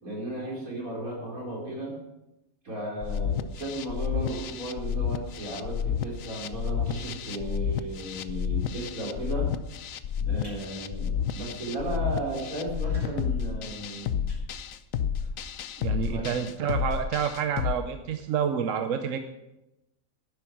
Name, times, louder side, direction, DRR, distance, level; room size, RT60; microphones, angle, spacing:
voice 1, 0.0-1.9 2.6-9.5 10.2-14.2 16.1-16.3, right 1 dB, 90° right, -3 dB, 4.5 m, -35 dB
sound 1, 3.0-17.8, left 8 dB, 75° left, 1.1 m, -30 dB
sound 2, 10.3-10.6 11.1-11.3 11.7-11.8 12.0-12.1 12.6-15.2, right 1 dB, 40° right, 4.6 m, -47 dB
voice 2, 15.8-19.2, right 8 dB, 70° right, 7 dB, 1.1 m, -28 dB
11.5 x 9.5 x 6.0 m, 0.92 s
omnidirectional pair, 1.4 m